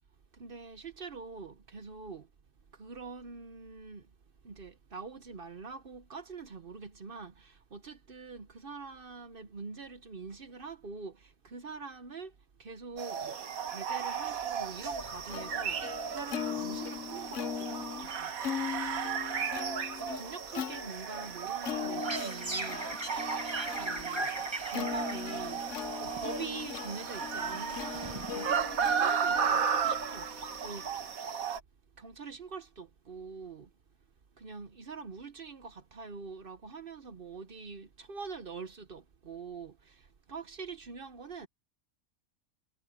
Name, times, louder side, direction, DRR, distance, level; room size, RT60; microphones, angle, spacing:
voice 1, 0.3-2.3 2.7-4.1 4.4-18.3 20.0-23.5 23.8-25.7 26.0-31.2 31.9-33.7 34.3-41.5, right 4 dB, 45° right, 1.0 m, -45 dB
sound 1, 13.0-31.6, right 7 dB, 80° right, 1.6 m, -35 dB
Plucked string instrument, 14.4-31.1, left 8 dB, 60° left, 1.2 m, -40 dB
sound 2, 21.7-29.0, right 2 dB, 20° right, 1.6 m, -40 dB
omnidirectional pair, 1.5 m